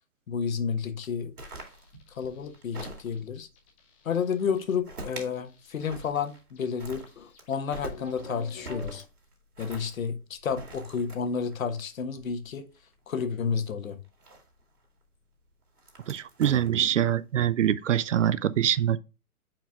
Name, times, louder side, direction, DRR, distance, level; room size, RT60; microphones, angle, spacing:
voice 1, 0.3-1.3 2.1-3.5 4.0-9.0 9.6-12.7 13.1-14.0, left 6 dB, 65° left, 1.3 m, -31 dB
sound 1, 1.0-3.4 4.3-5.3 5.6-6.5 6.8-12.9 14.0-14.8 15.6-17.2, right 2 dB, 85° right, 2.4 m, -44 dB
sound 2, 1.4-3.2 3.6-4.7 5.2-9.0, left 2 dB, 10° left, 0.5 m, -49 dB
voice 2, 16.1-19.0, right 10 dB, 60° right, 0.6 m, -24 dB
8.9 x 4.7 x 2.4 m
hypercardioid pair, 135°, 44 cm